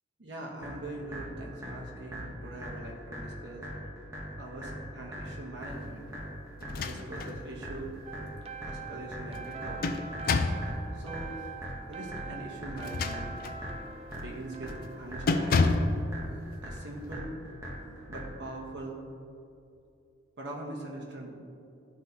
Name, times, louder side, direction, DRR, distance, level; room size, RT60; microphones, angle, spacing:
voice 1, 0.2-3.7 4.4-6.1 6.8-7.9 8.7-10.0 10.9-11.4 11.9-13.3 14.1-15.8 16.6-17.3 18.1-19.0 20.4-21.4, right 1 dB, 65° right, -2 dB, 1.1 m, -42 dB
sound 1, 0.6-18.6, equal, 15° right, 1.0 m, -42 dB
sound 2, 6.6-7.4 7.8-7.9 9.3-10.7 12.7-13.6 14.1-14.4 14.7-14.9 15.3-16.0, left 3 dB, 50° left, 0.4 m, -28 dB
sound 3, 8.1-15.9, right 5 dB, 30° right, 0.3 m, -44 dB
11.5 x 3.9 x 2.9 m, 2.6 s
head